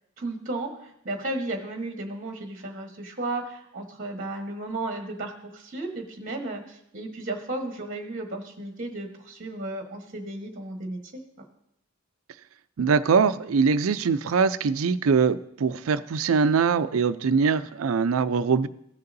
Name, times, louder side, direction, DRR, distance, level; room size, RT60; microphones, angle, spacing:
voice 1, 0.2-11.2, right 2 dB, 40° right, 3 dB, 1.3 m, -34 dB
voice 2, 12.8-18.7, right 5 dB, 80° right, 13 dB, 0.4 m, -22 dB
16.0 x 6.7 x 2.6 m, 0.76 s
head